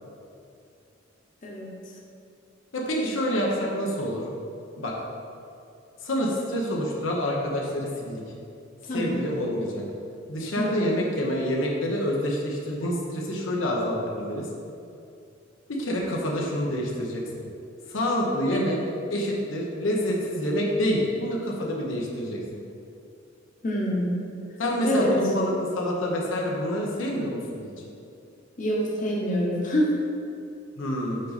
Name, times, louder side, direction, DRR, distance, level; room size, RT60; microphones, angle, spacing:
voice 1, 2.7-4.2 4.8-4.9 6.0-8.2 8.9-9.8 10.3-14.5 15.8-17.2 17.9-18.8 19.1-22.6 24.6-27.7 30.8-31.2, equal, 90° left, -2 dB, 0.9 m, -27 dB
voice 2, 8.9-9.2 10.5-10.9 23.6-24.1 24.8-25.1 28.6-29.9, equal, 40° left, -3 dB, 0.9 m, -26 dB
5.3 x 5.1 x 4.1 m, 2.5 s
head